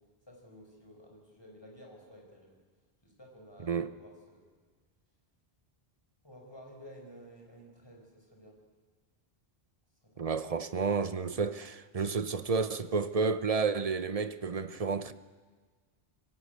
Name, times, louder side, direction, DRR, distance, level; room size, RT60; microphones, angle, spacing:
voice 1, 0.3-2.6 3.0-4.5 6.2-8.6 10.0-10.4, equal, 25° left, 5.4 m, -53 dB
voice 2, 10.2-15.1, right 5 dB, 40° right, 0.9 m, -31 dB
25.0 x 17.0 x 8.3 m
omnidirectional pair, 1.1 m